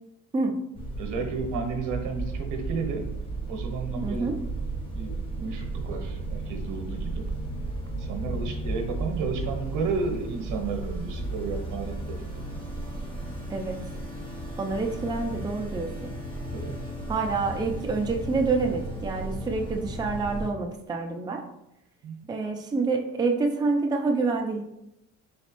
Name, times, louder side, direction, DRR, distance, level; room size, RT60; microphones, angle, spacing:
sound 1, 0.7-20.5, right 2 dB, 15° left, 1.1 m, -34 dB
voice 1, 1.0-3.1 3.5-4.3 4.9-7.3 7.9-12.4 16.5-16.8 22.0-22.2, right 4 dB, 70° right, 4 dB, 0.9 m, -32 dB
voice 2, 4.0-4.4 13.5-13.8 14.6-16.1 17.1-21.4 22.3-24.6, right 3 dB, 15° right, 2 dB, 0.5 m, -27 dB
4.1 x 3.2 x 3.0 m, 0.85 s
supercardioid pair, 85°, 32 cm